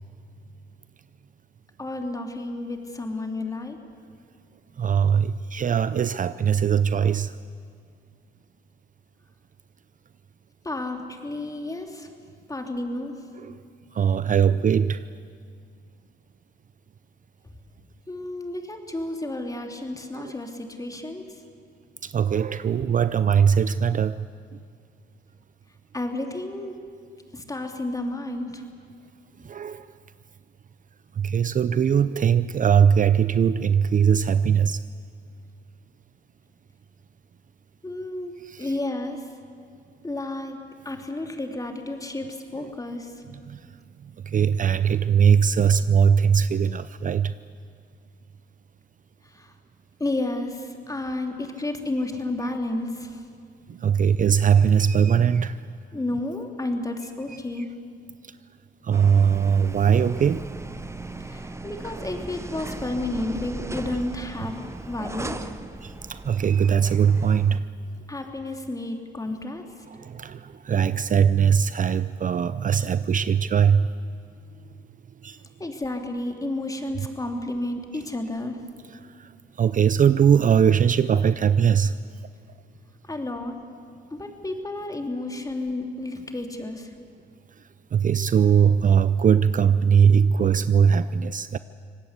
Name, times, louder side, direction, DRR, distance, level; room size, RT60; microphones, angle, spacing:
voice 1, 1.8-3.8 10.6-12.1 12.5-13.1 18.1-21.4 25.9-26.8 27.3-28.6 37.8-38.3 38.6-39.3 40.0-40.6 40.8-43.1 49.3-49.5 50.0-53.2 55.9-57.7 61.2-64.6 64.8-65.5 68.1-69.6 75.6-78.6 83.0-83.6 84.1-86.9, left 2 dB, 15° left, 2.8 m, -31 dB
voice 2, 4.8-7.4 13.4-13.6 13.9-15.1 20.1-20.3 22.0-24.3 24.5-24.6 29.4-29.9 31.2-34.8 38.5-38.7 42.6-42.7 43.5-43.6 44.0-47.3 53.7-55.6 58.8-60.5 65.8-67.7 69.9-73.9 75.2-75.4 79.2-79.3 79.6-81.9 87.9-91.6, right 7 dB, 40° right, 0.6 m, -20 dB
sound 1, 58.9-67.6, right 2 dB, 15° right, 1.0 m, -37 dB
25.0 x 18.5 x 8.2 m
cardioid pair, 90°, 20 cm